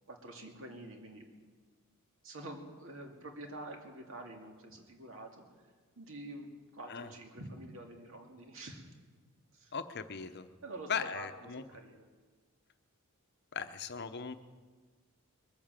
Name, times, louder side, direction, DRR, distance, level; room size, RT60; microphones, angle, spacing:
voice 1, 0.1-1.3 2.2-8.9 9.5-9.8 10.6-12.1, right 1 dB, 60° right, 3 dB, 2.3 m, -47 dB
voice 2, 9.7-10.5 10.9-11.6 13.5-14.4, left 6 dB, 50° left, 10 dB, 0.8 m, -38 dB
21.5 x 8.6 x 7.5 m, 1.4 s
head